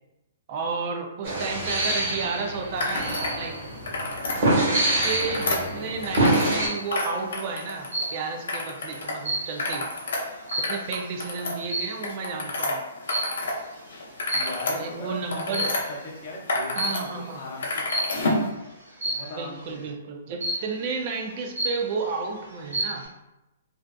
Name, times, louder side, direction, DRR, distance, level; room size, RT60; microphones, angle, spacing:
voice 1, 0.5-3.6 4.6-9.9 10.6-12.8 14.7-15.7 16.8-17.4 19.4-23.1, right 4 dB, 35° right, 3 dB, 0.3 m, -32 dB
sound 1, 1.2-6.7, right 1 dB, 55° right, 1.2 m, -25 dB
sound 2, 2.7-3.3 3.7-4.4 4.9-6.6 6.9-8.1 8.5-9.1 9.5-13.6 13.9-15.8 16.3-17.0 17.3-18.5, left 2 dB, 75° left, 0.7 m, -30 dB
sound 3, 6.2-6.9 7.9-8.4 8.8-11.1 11.6-12.1 13.1-13.5 14.3-14.9 15.4-16.1 16.8-17.1 17.9-18.3 19.0-19.4 20.4-20.9 21.3-21.4 21.6-22.2 22.5-23.1, right 1 dB, 75° right, 1.0 m, -30 dB
voice 2, 14.3-18.4 19.0-19.9, left 1 dB, 40° left, -2 dB, 0.6 m, -39 dB
2.5 x 2.3 x 2.2 m, 0.96 s
hypercardioid pair, 160°, 0 cm